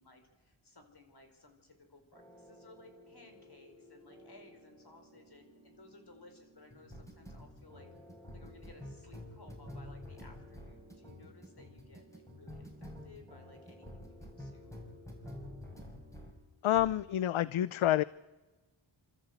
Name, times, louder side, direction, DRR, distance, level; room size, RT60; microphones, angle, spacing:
voice 1, 0.0-7.9 8.3-14.8, left 2 dB, 50° left, 5 dB, 4.8 m, -59 dB
sound 1, 2.1-16.4 16.7-17.0, left 1 dB, 5° left, 5.4 m, -50 dB
voice 2, 16.6-18.0, left 12 dB, 75° left, 18 dB, 0.6 m, -28 dB
27.5 x 13.5 x 8.1 m, 1.2 s
cardioid pair, 55°, 50 cm